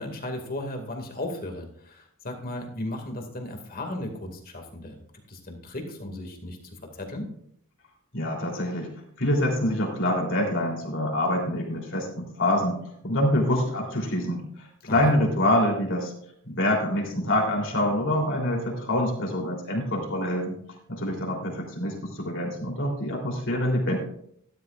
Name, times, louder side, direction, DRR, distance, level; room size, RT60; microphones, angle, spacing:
voice 1, 0.0-5.0 5.3-7.3 14.9-15.2, left 1 dB, 45° left, 3 dB, 2.2 m, -35 dB
voice 2, 8.1-8.9 9.2-12.8 13.0-16.1 16.4-20.6 20.9-24.0, left 1 dB, 60° left, 0 dB, 3.4 m, -26 dB
13.0 x 12.5 x 2.5 m, 0.68 s
head